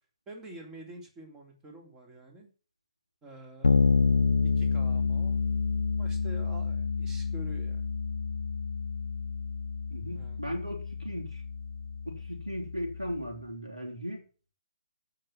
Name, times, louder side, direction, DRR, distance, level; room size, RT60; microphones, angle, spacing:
voice 1, 0.3-2.5 3.2-3.9 4.6-5.5 6.0-7.9 10.1-10.4, right 1 dB, 15° right, 2 dB, 3.3 m, -47 dB
Bass guitar, 3.6-13.3, left 4 dB, 70° left, 0.7 m, -29 dB
voice 2, 9.9-11.4 12.1-14.2, equal, 85° right, -1 dB, 4.1 m, -37 dB
15.5 x 6.0 x 7.5 m, 0.39 s
figure-of-eight pair, 135°, 3 cm